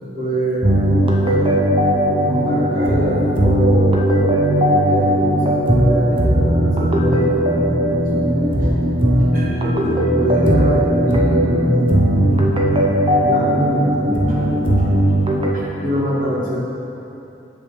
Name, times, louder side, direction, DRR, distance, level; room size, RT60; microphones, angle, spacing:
voice 1, 0.0-1.6 2.2-4.2 4.8-8.7 9.3-12.7 13.2-14.8 15.5-16.6, equal, 45° right, -6 dB, 1.6 m, -25 dB
sound 1, 0.6-15.5, equal, 30° right, 0.6 m, -17 dB
8.0 x 7.1 x 3.2 m, 3.0 s
head